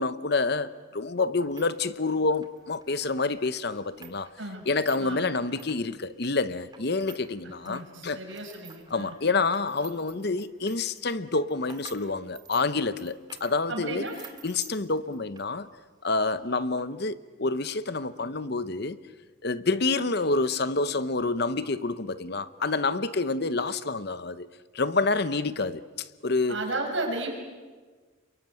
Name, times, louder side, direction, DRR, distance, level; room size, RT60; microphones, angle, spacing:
voice 1, 0.0-4.3 4.7-8.2 8.9-14.1 14.4-15.7 16.0-19.0 19.4-24.5 24.7-26.6, left 3 dB, 50° left, 0.9 m, -28 dB
sound 1, 1.3-7.3 7.5-15.5 15.8-15.9 16.6-16.8, right 6 dB, 20° right, 2.1 m, -51 dB
voice 2, 5.0-5.3 7.6-9.1 13.7-14.2 26.5-27.3, right 2 dB, 65° right, 6.2 m, -33 dB
28.0 x 23.0 x 9.2 m
head